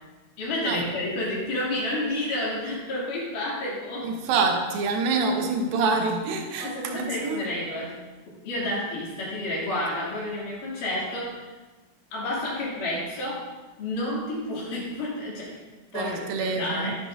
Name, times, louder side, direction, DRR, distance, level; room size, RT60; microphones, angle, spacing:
voice 1, 0.4-4.1 6.6-8.0 8.3-11.5 12.1-13.5 13.8-15.6 15.9-17.0, left 1 dB, 70° left, -6 dB, 4.3 m, -30 dB
voice 2, 4.0-7.4 15.9-16.9, right 4 dB, 85° right, 4 dB, 2.7 m, -26 dB
11.0 x 9.9 x 2.7 m, 1.2 s
omnidirectional pair, 4.0 m